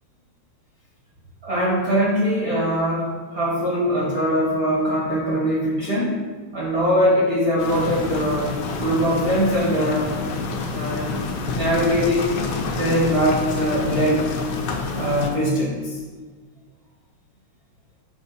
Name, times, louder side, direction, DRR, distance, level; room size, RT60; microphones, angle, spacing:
voice 1, 1.4-6.2 6.5-10.1 10.7-11.2 11.5-12.3 12.8-14.3 14.9-16.0, equal, 45° right, -8 dB, 1.2 m, -22 dB
sound 1, 7.6-15.3, left 3 dB, 75° left, 1.6 m, -28 dB
7.1 x 3.1 x 5.9 m, 1.4 s
omnidirectional pair, 3.6 m